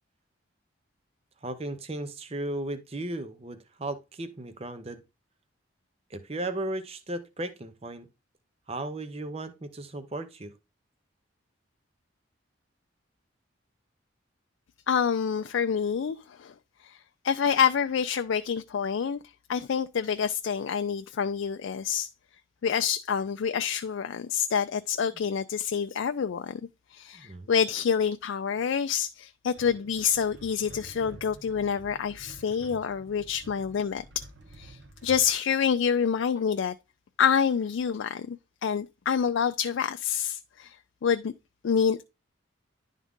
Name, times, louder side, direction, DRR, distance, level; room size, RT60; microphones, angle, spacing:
voice 1, 1.4-5.0 6.1-8.1 8.7-10.5 27.1-27.5, right 1 dB, 30° right, 0.7 m, -35 dB
voice 2, 14.9-16.5 16.8-17.0 17.2-19.2 19.5-22.1 22.6-26.6 26.9-34.0 34.5-36.7 37.2-40.7 41.0-41.3 41.6-42.0, left 7 dB, 65° left, 0.4 m, -27 dB
sound 1, 29.5-35.3, right 2 dB, 55° right, 0.9 m, -49 dB
11.0 x 3.6 x 3.6 m
head